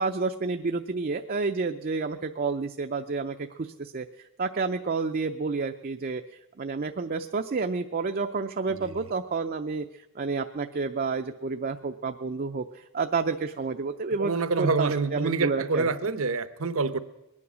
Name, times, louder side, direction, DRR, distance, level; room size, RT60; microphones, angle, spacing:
voice 1, 0.0-4.1 4.4-6.2 6.6-14.3 14.6-15.9, right 4 dB, 40° right, 6 dB, 0.5 m, -30 dB
voice 2, 8.7-9.1 14.2-17.0, right 3 dB, 70° right, 13 dB, 0.8 m, -27 dB
22.0 x 9.7 x 6.2 m, 0.97 s
head